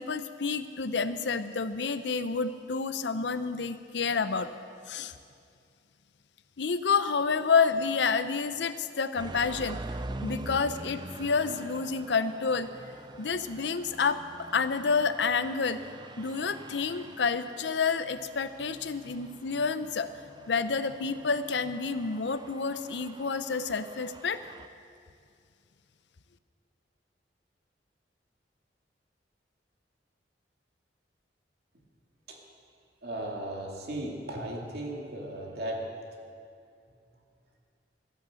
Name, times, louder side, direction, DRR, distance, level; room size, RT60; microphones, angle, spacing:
voice 1, 0.0-4.5 4.9-5.1 6.6-9.8 10.2-12.7 13.2-15.8 16.2-20.1 20.5-24.4, left 5 dB, 75° left, 12 dB, 0.7 m, -29 dB
sound 1, 9.2-24.7, right 2 dB, 25° right, 0.4 m, -45 dB
voice 2, 33.0-35.9, right 1 dB, 60° right, 0 dB, 2.5 m, -36 dB
13.5 x 11.0 x 7.6 m, 2.3 s
head